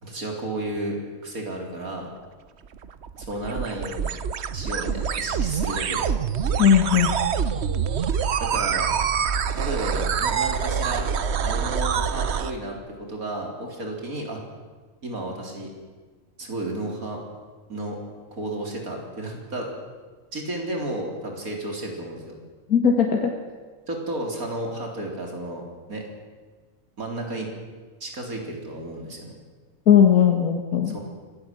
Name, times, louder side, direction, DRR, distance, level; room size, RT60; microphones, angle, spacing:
voice 1, 0.0-2.1 3.2-4.2 4.5-6.1 8.4-8.9 9.6-11.1 11.4-14.4 15.0-15.7 16.4-17.2 17.7-18.0 18.3-19.7 20.3-22.4 23.9-26.1 27.0-27.5 28.0-29.3 30.9-31.1, right 1 dB, 75° right, 1 dB, 4.4 m, -32 dB
sound 1, 2.6-12.5, right 7 dB, 55° right, 1.0 m, -26 dB
voice 2, 6.6-7.1 22.7-23.3 29.9-31.1, left 8 dB, 80° left, 2 dB, 2.2 m, -18 dB
25.5 x 17.5 x 7.8 m, 1.4 s
omnidirectional pair, 1.5 m